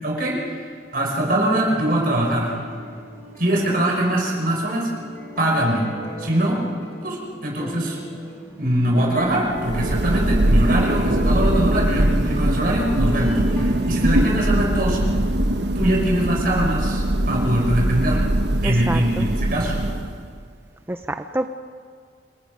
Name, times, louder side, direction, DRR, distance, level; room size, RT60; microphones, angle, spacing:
voice 1, 0.0-0.7 0.9-2.6 3.4-4.9 5.4-5.9 6.2-6.6 7.0-8.0 8.6-15.0 15.7-18.3 18.6-19.8, right 1 dB, 55° right, -1 dB, 5.5 m, -22 dB
sound 1, 1.9-15.4, left 1 dB, 15° left, 4.1 m, -37 dB
Thunder, 9.4-20.4, right 1 dB, 75° right, 1.2 m, -21 dB
voice 2, 18.6-19.3 20.9-21.5, right 1 dB, 15° right, 8 dB, 0.5 m, -27 dB
28.5 x 19.5 x 5.4 m, 2.1 s
head